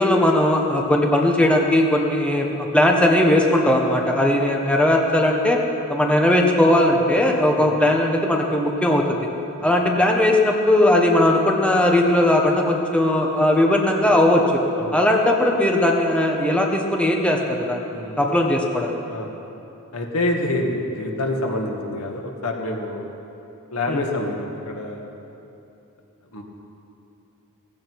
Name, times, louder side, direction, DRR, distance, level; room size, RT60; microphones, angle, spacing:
voice 1, 0.0-5.6 5.9-9.2 9.6-14.6 14.9-17.8 18.2-19.0 23.9-24.0, left 1 dB, 5° left, 0 dB, 1.1 m, -18 dB
voice 2, 17.9-18.3 19.1-19.3 19.9-23.0 23.7-25.1 26.3-26.4, left 1 dB, 75° left, 2 dB, 1.8 m, -27 dB
17.0 x 15.5 x 4.7 m, 2.8 s
head